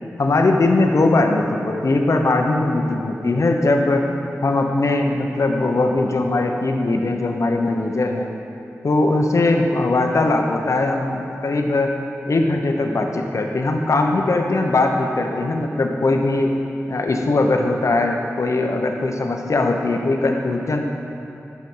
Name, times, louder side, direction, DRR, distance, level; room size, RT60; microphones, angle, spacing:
voice 1, 0.2-4.0 4.4-8.3 8.8-11.9 12.3-16.6 16.9-20.8, left 2 dB, 70° left, 3 dB, 1.1 m, -20 dB
12.0 x 7.2 x 5.6 m, 2.7 s
wide cardioid pair, 60°, 6 cm